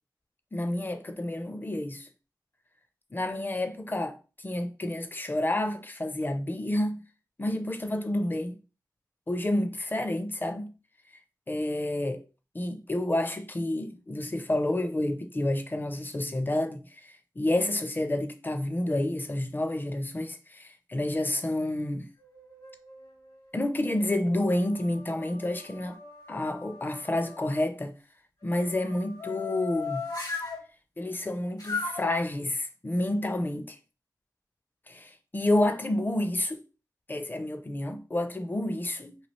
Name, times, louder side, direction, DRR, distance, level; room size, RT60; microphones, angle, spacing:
voice 1, 0.5-2.1 3.1-7.0 7.4-8.6 9.3-10.7 11.5-12.3 12.5-22.1 23.5-26.0 26.3-27.9 28.4-30.1 31.0-33.8 34.9-36.6 37.1-39.2, left 1 dB, 25° left, 0.5 m, -29 dB
sound 1, 22.2-23.1 23.7-27.6 28.4-30.6 31.6-32.2, left 4 dB, 60° left, 1.0 m, -38 dB
3.1 x 2.4 x 3.0 m
cardioid pair, 50°, 8 cm